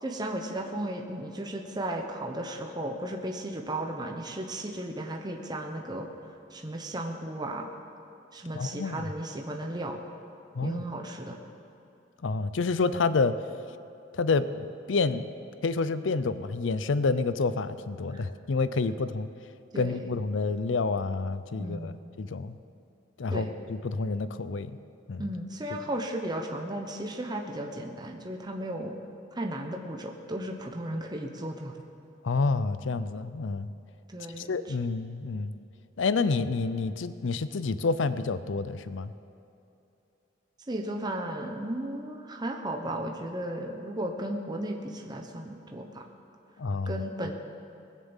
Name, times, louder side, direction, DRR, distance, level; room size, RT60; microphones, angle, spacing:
voice 1, 0.0-6.1 6.5-7.7 8.3-10.0 10.6-11.4 18.1-18.2 19.7-20.2 21.6-22.0 23.3-23.5 25.2-29.0 29.3-31.8 34.1-34.7 40.7-46.0 46.9-47.3, right 1 dB, 20° right, 2 dB, 1.0 m, -35 dB
voice 2, 8.5-9.0 10.6-10.8 12.2-13.3 14.2-15.3 15.6-19.3 19.8-22.6 23.2-24.7 25.1-25.3 32.2-33.7 34.4-35.5 36.0-39.1 46.6-47.0, left 4 dB, 85° left, 13 dB, 0.5 m, -28 dB
19.5 x 7.5 x 7.2 m, 2.8 s
head